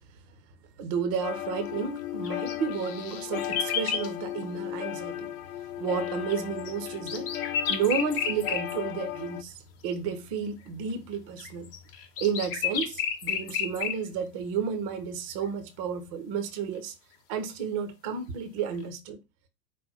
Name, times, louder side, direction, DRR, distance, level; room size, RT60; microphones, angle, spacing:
voice 1, 0.8-5.3 5.8-7.3 7.7-9.6 9.8-11.7 12.2-16.9 17.3-19.2, right 6 dB, 25° right, 0.5 m, -32 dB
sound 1, 1.2-9.4, left 12 dB, 60° left, 0.5 m, -36 dB
sound 2, 2.2-4.1 6.3-8.7 9.9-10.0 11.4-14.0, left 7 dB, 35° left, 0.8 m, -31 dB
4.7 x 2.1 x 4.0 m
figure-of-eight pair, 105°, 49 cm